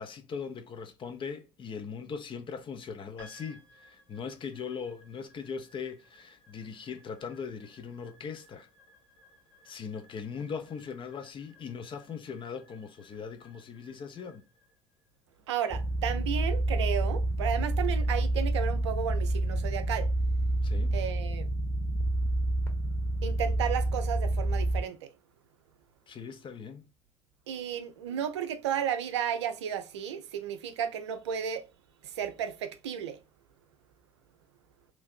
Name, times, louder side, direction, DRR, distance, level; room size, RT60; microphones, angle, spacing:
voice 1, 0.0-8.7 9.6-14.4 20.6-21.0 26.1-26.9, left 6 dB, 35° left, 0.6 m, -40 dB
sound 1, 3.2-17.5, left 1 dB, 80° left, 1.4 m, -61 dB
voice 2, 15.5-20.1 20.9-21.4 23.2-25.1 27.5-31.6 32.0-33.2, right 9 dB, 75° right, 0.4 m, -33 dB
sound 2, 15.7-24.8, right 1 dB, 15° left, 1.0 m, -28 dB
3.0 x 2.5 x 2.4 m
figure-of-eight pair, 55°, 15 cm